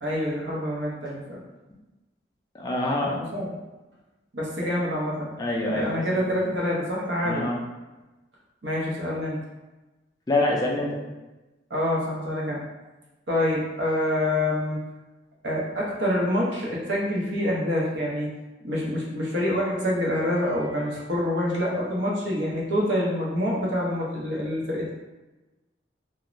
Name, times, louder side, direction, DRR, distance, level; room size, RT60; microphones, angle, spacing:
voice 1, 0.0-1.4 3.0-3.5 4.3-5.3 5.7-7.5 8.6-9.4 11.7-12.6 13.3-14.8 15.4-18.3 18.6-24.9, left 1 dB, 65° right, -4 dB, 0.7 m, -26 dB
voice 2, 2.5-3.2 4.6-4.7 5.4-6.2 7.2-7.6 10.3-11.0, left 1 dB, 20° left, -3 dB, 0.3 m, -26 dB
2.4 x 2.1 x 3.0 m, 1.1 s
head